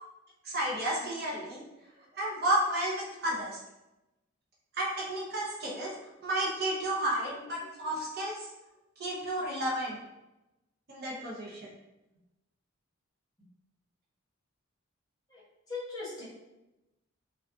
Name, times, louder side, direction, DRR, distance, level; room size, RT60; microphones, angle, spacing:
voice 1, 0.4-1.6 2.1-3.6 4.7-5.9 6.2-8.5 9.0-10.0 10.9-11.7, right 1 dB, 50° right, -4 dB, 0.6 m, -32 dB
voice 2, 15.7-16.3, left 3 dB, 20° left, -8 dB, 0.9 m, -38 dB
2.3 x 2.3 x 2.5 m, 0.97 s
head